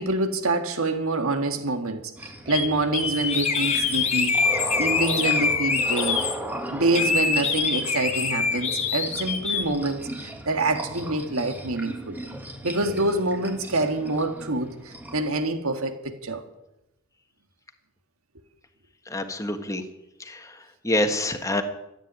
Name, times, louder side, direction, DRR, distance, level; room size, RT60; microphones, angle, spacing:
voice 1, 0.0-4.3 4.8-6.3 6.7-12.2 12.6-16.4, right 2 dB, 80° right, 1.9 m, -26 dB
sound 1, 2.2-15.3, right 1 dB, 10° right, 1.7 m, -37 dB
sound 2, 2.5-2.7 2.9-6.3 6.9-9.6, left 5 dB, 30° left, 1.8 m, -24 dB
voice 2, 19.1-19.8 20.2-20.5 20.8-21.6, left 1 dB, 15° left, 1.4 m, -26 dB
14.0 x 9.1 x 9.6 m
head